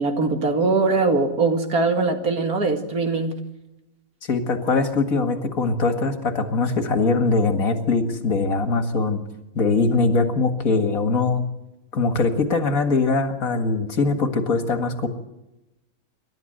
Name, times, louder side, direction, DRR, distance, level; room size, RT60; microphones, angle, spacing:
voice 1, 0.0-3.4, right 3 dB, 85° right, 5 dB, 2.7 m, -21 dB
voice 2, 4.3-9.2 9.6-11.4 11.9-15.1, left 3 dB, 70° left, 7 dB, 2.3 m, -22 dB
28.0 x 12.5 x 7.9 m, 0.95 s
omnidirectional pair, 1.5 m